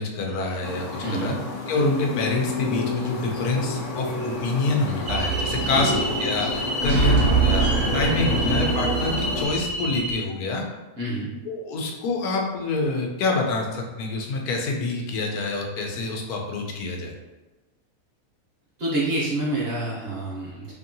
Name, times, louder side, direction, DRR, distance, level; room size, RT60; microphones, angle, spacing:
voice 1, 0.0-1.4 1.7-7.2 7.4-7.7 7.9-10.7 11.5-17.1, left 3 dB, 85° left, 1 dB, 1.1 m, -26 dB
sound 1, 0.6-9.5, left 2 dB, 65° left, 0.8 m, -30 dB
voice 2, 1.0-1.4 5.7-6.0 6.8-7.1 8.4-8.6 11.0-11.3 18.8-20.7, right 2 dB, 55° right, -6 dB, 0.8 m, -28 dB
sound 2, 5.1-10.2, right 3 dB, 70° right, 1.1 m, -24 dB
2.9 x 2.6 x 2.6 m, 1.1 s
omnidirectional pair, 1.6 m